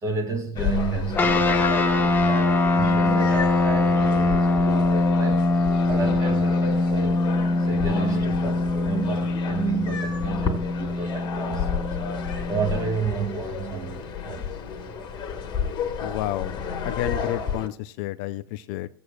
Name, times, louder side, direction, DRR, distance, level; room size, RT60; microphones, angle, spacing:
voice 1, 0.0-7.2 7.6-12.2 12.5-14.5, right 5 dB, 30° right, 2.2 m, -31 dB
sound 1, 0.6-17.7, left 6 dB, 35° left, 1.4 m, -32 dB
sound 2, 1.1-13.0, left 2 dB, 15° left, 1.1 m, -23 dB
voice 2, 16.0-18.9, left 14 dB, 55° left, 0.5 m, -31 dB
19.0 x 7.8 x 2.3 m
hypercardioid pair, 100°, 12 cm